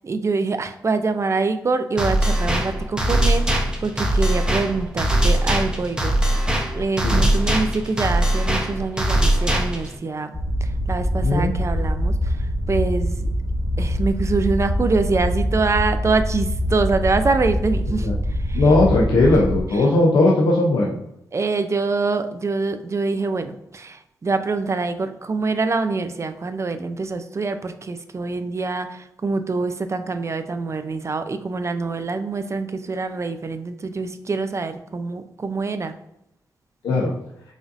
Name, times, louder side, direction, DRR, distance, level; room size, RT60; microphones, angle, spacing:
voice 1, 0.0-6.2 6.7-10.3 10.6-12.3 12.7-13.1 13.8-18.1 18.5-18.6 19.3-19.9 21.3-35.9, right 3 dB, 40° right, 9 dB, 0.4 m, -25 dB
sound 1, 2.0-10.0, right 1 dB, 10° right, 0.7 m, -21 dB
sound 2, 10.3-19.6, equal, 10° left, 1.1 m, -24 dB
voice 2, 18.5-20.9 36.8-37.1, left 2 dB, 85° left, -3 dB, 0.6 m, -18 dB
4.9 x 2.6 x 2.5 m, 0.79 s
cardioid pair, 65°, 8 cm